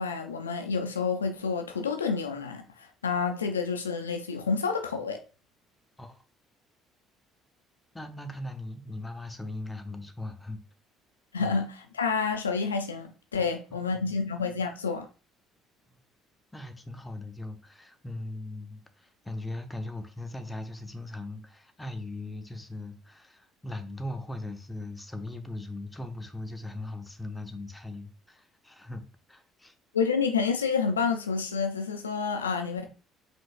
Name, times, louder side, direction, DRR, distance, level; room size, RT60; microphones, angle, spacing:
voice 1, 0.0-5.2 11.3-15.1 29.9-32.8, left 5 dB, 90° left, 0.3 m, -29 dB
voice 2, 7.9-10.6 11.4-11.5 13.4-14.1 16.5-29.0 29.3-29.7, left 2 dB, 15° left, 0.8 m, -39 dB
5.1 x 3.7 x 2.5 m
hypercardioid pair, 55°, 0 cm